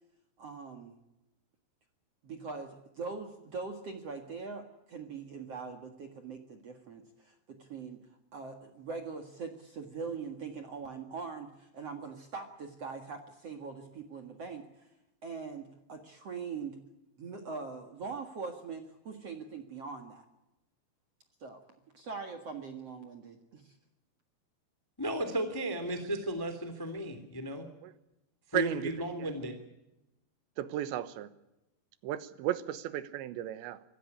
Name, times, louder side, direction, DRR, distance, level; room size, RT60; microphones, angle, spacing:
voice 1, 0.4-1.0 2.2-8.1 8.3-14.9 15.2-16.8 17.2-20.3 21.4-21.6 21.9-23.7, right 4 dB, 50° right, 2.1 m, -42 dB
voice 2, 25.0-27.7 28.5-29.5, right 1 dB, 10° left, 1.6 m, -34 dB
voice 3, 28.5-28.9 29.2-29.3 30.6-31.3 32.0-33.8, right 12 dB, 85° right, 3.4 m, -34 dB
26.0 x 15.0 x 9.9 m
omnidirectional pair, 5.1 m